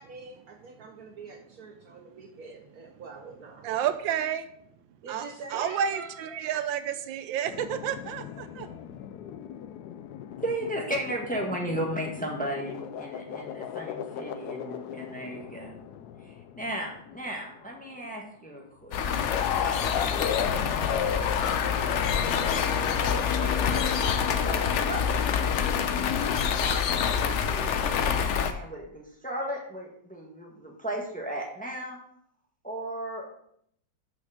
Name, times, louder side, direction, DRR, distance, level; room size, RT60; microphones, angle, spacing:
voice 1, 0.0-3.8 5.0-6.6, right 4 dB, 60° right, 4 dB, 1.1 m, -44 dB
voice 2, 3.6-4.5 5.1-8.8, right 9 dB, 85° right, 10 dB, 1.4 m, -30 dB
sound 1, 7.5-17.6 17.9-18.0 18.9-26.5, left 9 dB, 70° left, 1.0 m, -36 dB
voice 3, 10.4-15.8 16.2-19.0 19.5-19.9 21.3-22.0 22.4-25.0 25.4-27.7 28.3-32.0 32.6-33.3, right 1 dB, 5° left, -1 dB, 1.3 m, -36 dB
sound 2, 18.9-28.5, left 7 dB, 90° left, 0.6 m, -27 dB
Wind instrument woodwind instrument, 21.6-25.5, left 7 dB, 35° left, 1.7 m, -45 dB
6.2 x 5.9 x 6.5 m, 0.69 s
omnidirectional pair, 2.0 m